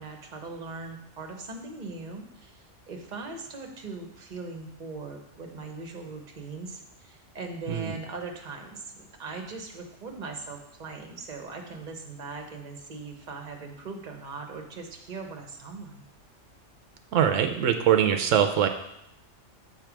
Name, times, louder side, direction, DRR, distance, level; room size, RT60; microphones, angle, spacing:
voice 1, 0.0-16.0, right 3 dB, 40° right, 3 dB, 1.0 m, -40 dB
voice 2, 17.1-18.7, right 9 dB, 85° right, 6 dB, 1.0 m, -22 dB
7.9 x 3.4 x 6.0 m, 0.82 s
omnidirectional pair, 1.3 m